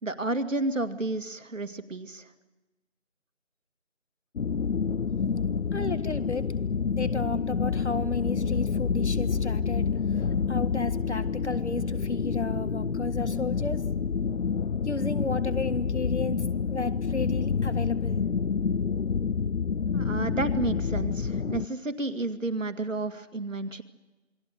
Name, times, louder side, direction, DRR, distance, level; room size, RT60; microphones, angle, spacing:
voice 1, 0.0-2.3 19.9-23.8, right 2 dB, 80° right, 9 dB, 2.1 m, -31 dB
sound 1, 4.4-21.7, left 6 dB, 85° left, 0.7 m, -28 dB
voice 2, 5.7-6.5 6.9-9.9 10.5-13.9 14.8-18.2, left 3 dB, 60° left, 12 dB, 1.8 m, -33 dB
27.5 x 22.5 x 6.6 m, 1.2 s
figure-of-eight pair, 170°, 38 cm